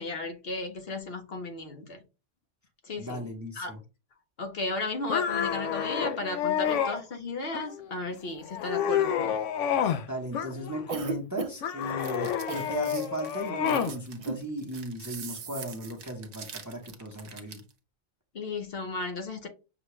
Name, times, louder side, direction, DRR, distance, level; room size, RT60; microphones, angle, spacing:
voice 1, 0.0-2.0 2.8-3.2 3.6-3.7 4.4-9.3 18.3-19.5, left 2 dB, 55° left, 1.0 m, -34 dB
voice 2, 2.9-3.8 10.1-17.6, equal, 15° right, 0.8 m, -36 dB
sound 1, 5.1-7.0 7.5-8.0 8.4-10.0 10.3-11.0 11.6-13.9, left 8 dB, 85° left, 1.0 m, -29 dB
Cough, 10.9-11.8 12.5-12.7 13.7-13.9 14.2-14.4, right 4 dB, 50° right, 0.4 m, -34 dB
sound 2, 11.8-17.7, right 7 dB, 65° right, 1.0 m, -45 dB
6.0 x 2.3 x 3.0 m
omnidirectional pair, 1.2 m